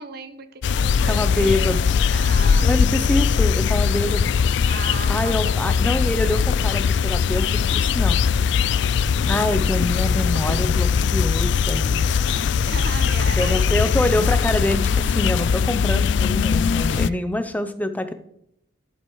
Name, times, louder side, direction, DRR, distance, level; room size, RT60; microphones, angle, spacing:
voice 1, 0.0-3.1 4.7-5.7 12.7-13.9 16.9-17.2, right 4 dB, 50° right, 10 dB, 0.9 m, -36 dB
sound 1, 0.6-17.1, left 6 dB, 60° left, 0.3 m, -20 dB
voice 2, 1.1-1.8 2.6-4.3 5.1-8.2 9.2-12.0 13.4-18.1, left 1 dB, 10° left, 10 dB, 0.6 m, -25 dB
13.5 x 11.0 x 3.1 m, 0.75 s
head